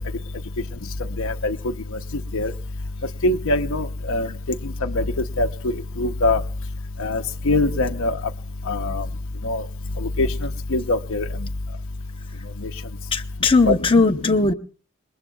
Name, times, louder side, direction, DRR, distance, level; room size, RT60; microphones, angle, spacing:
voice 1, 1.2-1.6 2.3-2.5 3.2-4.3 4.8-5.0 5.4-5.5 6.0-6.4 7.0-8.1 8.7-9.0 9.4-9.6 10.2-10.3 10.7-11.2 13.7-13.8, left 2 dB, 65° left, 0.8 m, -22 dB
voice 2, 13.1-14.5, left 3 dB, 25° left, 0.9 m, -18 dB
26.5 x 21.5 x 2.3 m
head